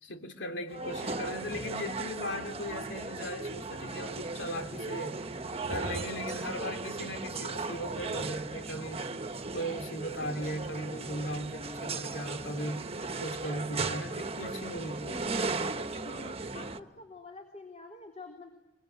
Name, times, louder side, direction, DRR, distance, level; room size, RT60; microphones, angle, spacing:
voice 1, 0.0-5.2 5.7-9.1 9.5-12.9 13.2-15.2, equal, 75° left, 2.9 m, -38 dB
sound 1, 0.7-16.8, right 3 dB, 35° right, 1.2 m, -36 dB
sound 2, 3.9-14.6, right 1 dB, 5° right, 3.2 m, -60 dB
voice 2, 16.1-18.5, left 3 dB, 40° left, 3.9 m, -47 dB
24.5 x 24.5 x 9.5 m
head